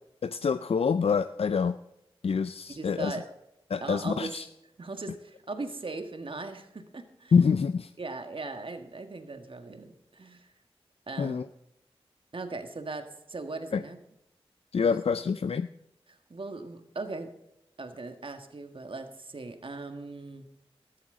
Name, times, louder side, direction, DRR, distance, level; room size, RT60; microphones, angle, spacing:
voice 1, 0.2-1.8 2.2-3.2 3.7-4.5 7.3-7.9 11.2-11.4 13.7-13.8 14.7-15.7, left 6 dB, 75° left, 12 dB, 0.4 m, -26 dB
voice 2, 2.7-3.3 3.8-4.3 4.8-7.3 8.0-10.5 11.1-11.4 12.3-14.0 14.8-15.2 16.1-17.3 17.8-20.5, right 3 dB, 60° right, 7 dB, 1.6 m, -39 dB
13.5 x 13.5 x 3.8 m, 0.86 s
wide cardioid pair, 60°, 10 cm